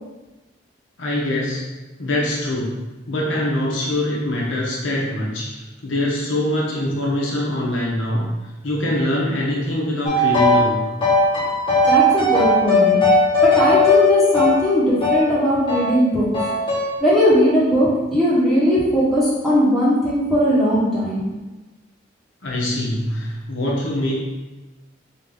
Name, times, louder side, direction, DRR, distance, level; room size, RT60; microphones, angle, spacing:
voice 1, 1.0-1.6 2.0-2.8 3.1-5.5 5.8-8.3 8.6-10.9 22.4-24.1, left 1 dB, 80° left, -3 dB, 1.0 m, -23 dB
sound 1, 10.1-10.7 11.0-15.3 15.7-15.9 16.3-16.9, left 2 dB, 25° left, 1.1 m, -17 dB
voice 2, 11.9-13.0 13.4-16.3 17.0-21.2, equal, ahead, -10 dB, 1.3 m, -18 dB
3.7 x 2.9 x 3.9 m, 1.1 s
head